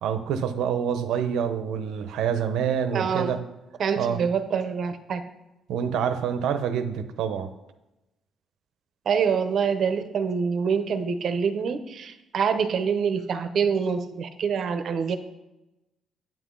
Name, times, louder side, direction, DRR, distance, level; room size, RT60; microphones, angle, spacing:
voice 1, 0.0-3.4 4.0-4.2 5.7-7.5, right 8 dB, 90° right, 9 dB, 0.8 m, -27 dB
voice 2, 2.9-3.4 3.8-5.2 9.1-15.2, right 6 dB, 50° right, 10 dB, 0.8 m, -26 dB
8.9 x 8.1 x 3.9 m, 0.95 s
cardioid pair, 145°, 0 cm